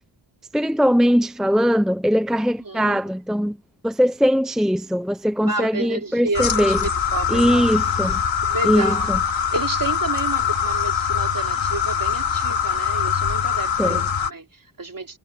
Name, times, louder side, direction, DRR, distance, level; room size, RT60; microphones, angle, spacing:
voice 1, 0.5-3.6 3.8-6.8 7.3-8.2 8.6-9.2 13.8-14.0, equal, ahead, 0.8 m, -20 dB
voice 2, 2.6-3.0 5.4-7.7 8.4-15.2, right 3 dB, 45° right, 3.1 m, -31 dB
sound 1, 6.3-14.3, left 7 dB, 65° left, 3.2 m, -23 dB
cardioid pair, 60°, 48 cm